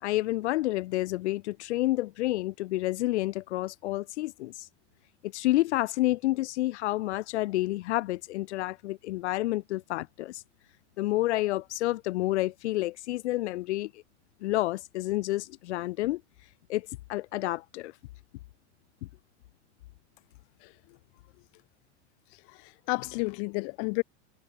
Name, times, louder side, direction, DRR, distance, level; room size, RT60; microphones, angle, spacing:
voice 1, 0.0-4.7 5.2-10.4 11.0-14.0 14.4-16.2 16.7-17.9, left 17 dB, 75° left, 1.5 m, -29 dB
voice 2, 22.5-24.0, left 40 dB or more, 50° left, 1.9 m, -31 dB
supercardioid pair, 140°, 35 cm